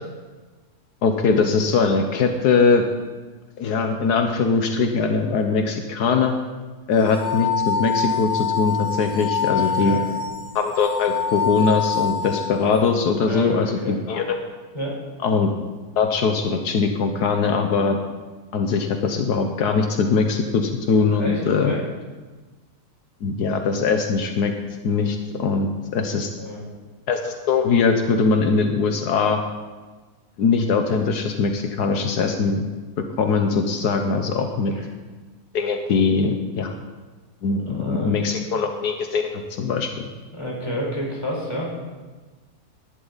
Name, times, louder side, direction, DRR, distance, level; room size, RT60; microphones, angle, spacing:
voice 1, 1.0-2.8 3.6-6.3 6.9-10.0 10.5-14.3 15.2-15.5 16.0-18.0 18.5-21.7 23.2-24.5 24.8-26.3 27.1-29.4 30.4-32.7 33.2-34.7 35.5-36.7 37.4-40.0, left 4 dB, 80° left, 5 dB, 1.5 m, -21 dB
sound 1, 6.9-12.8, left 6 dB, 15° right, 4.9 m, -25 dB
voice 2, 9.5-10.0 13.3-14.0 14.7-15.0 21.1-21.8 26.4-26.6 37.5-38.1 40.3-41.7, equal, 15° left, -4 dB, 4.3 m, -29 dB
18.5 x 11.5 x 4.0 m, 1.3 s
omnidirectional pair, 1.7 m